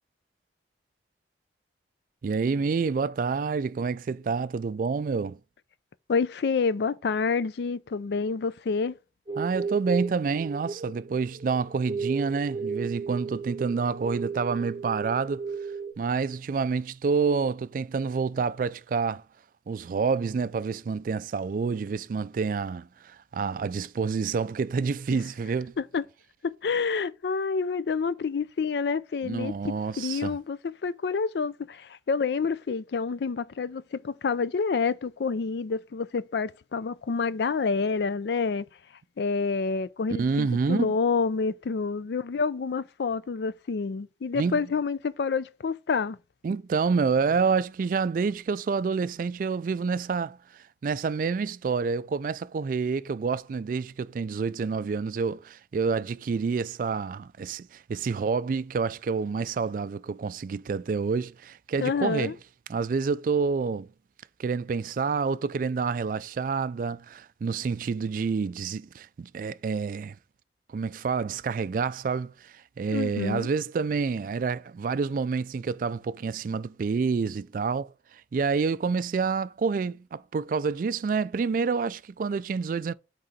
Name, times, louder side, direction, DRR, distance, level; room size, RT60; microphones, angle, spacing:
voice 1, 2.2-5.4 9.4-15.4 16.0-19.2 19.7-25.7 29.2-30.4 40.2-40.9 44.3-44.6 46.4-62.3 62.7-63.9 64.4-70.2 70.7-82.9, right 5 dB, 50° right, 0.3 m, -28 dB
voice 2, 6.1-8.9 25.8-26.0 26.6-38.7 39.2-46.2 61.8-62.3 72.9-73.5, left 5 dB, 70° left, 0.4 m, -28 dB
sound 1, 9.3-15.9, right 5 dB, 20° right, 0.9 m, -34 dB
8.8 x 3.7 x 4.2 m
head